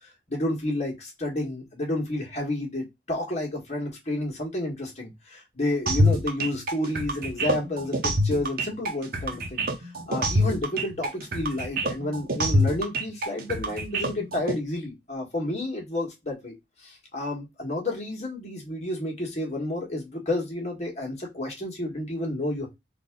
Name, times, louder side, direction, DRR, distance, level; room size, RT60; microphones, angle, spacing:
voice 1, 0.3-22.7, left 1 dB, 40° left, 1.7 m, -31 dB
sound 1, 5.9-14.5, equal, 55° right, 0.9 m, -25 dB
4.0 x 2.8 x 3.6 m
head